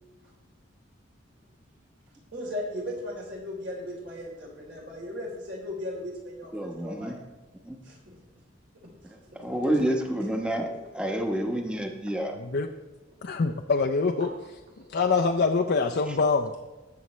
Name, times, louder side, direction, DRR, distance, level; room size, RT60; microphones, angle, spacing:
voice 1, 2.3-7.2 7.8-8.2 9.0-9.5 14.2-14.3, left 1 dB, 60° right, -2 dB, 3.6 m, -37 dB
voice 2, 6.5-7.2 7.6-7.8 9.1-12.4, right 1 dB, 5° right, 2 dB, 1.1 m, -29 dB
voice 3, 13.2-14.3 14.9-16.5, left 4 dB, 55° left, 2 dB, 0.5 m, -24 dB
20.0 x 7.1 x 3.2 m, 1.2 s
head